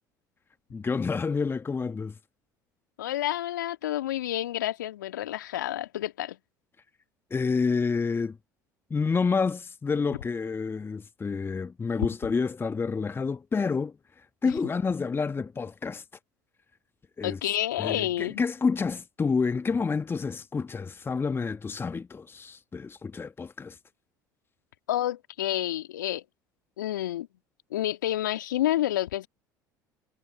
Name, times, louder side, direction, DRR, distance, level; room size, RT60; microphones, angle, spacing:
voice 1, 0.7-2.2 7.3-8.4 8.9-16.0 17.2-17.4 17.8-23.8, left 5 dB, 20° left, 1.2 m, -29 dB
voice 2, 3.0-6.4 14.4-14.5 17.2-18.4 24.9-26.2 26.8-27.3 27.7-29.3, left 13 dB, 75° left, 2.4 m, -29 dB
figure-of-eight pair, 65°, 10 cm